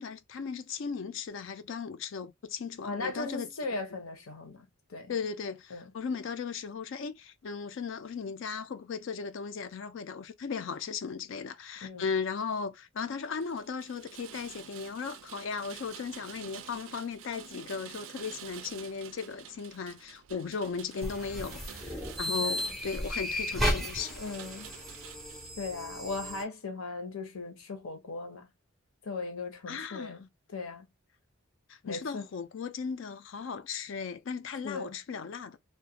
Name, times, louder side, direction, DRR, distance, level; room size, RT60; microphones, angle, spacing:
voice 1, 0.0-3.5 5.1-24.2 29.7-30.3 31.7-35.6, left 5 dB, 60° left, 0.4 m, -37 dB
voice 2, 2.8-4.6 4.9-5.1 5.7-5.9 11.8-12.1 20.3-20.5 21.9-22.7 24.2-24.7 25.6-28.5 29.0-30.2 30.5-30.9 31.8-32.2 34.6-34.9, left 3 dB, 80° left, 0.8 m, -38 dB
Rain, 13.2-25.5, right 9 dB, 65° right, 0.3 m, -49 dB
sound 1, 21.0-26.4, left 1 dB, ahead, 0.5 m, -34 dB
2.4 x 2.2 x 2.7 m
head